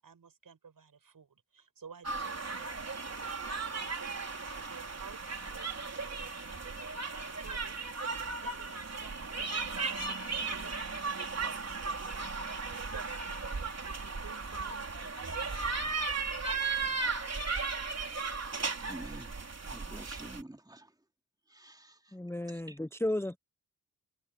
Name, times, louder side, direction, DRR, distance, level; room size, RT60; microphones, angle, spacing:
voice 1, 0.0-3.1 3.7-10.7 11.3-12.4 12.7-16.4 16.8-17.2, right 6 dB, 65° right, 7.2 m, -54 dB
sound 1, 2.0-20.4, right 4 dB, 45° right, 3.7 m, -36 dB
voice 2, 18.8-19.3 19.6-20.9 21.5-22.0 22.5-22.7, right 1 dB, 10° right, 2.9 m, -48 dB
voice 3, 22.1-23.4, left 1 dB, 5° left, 0.8 m, -34 dB
cardioid pair, 50°, 36 cm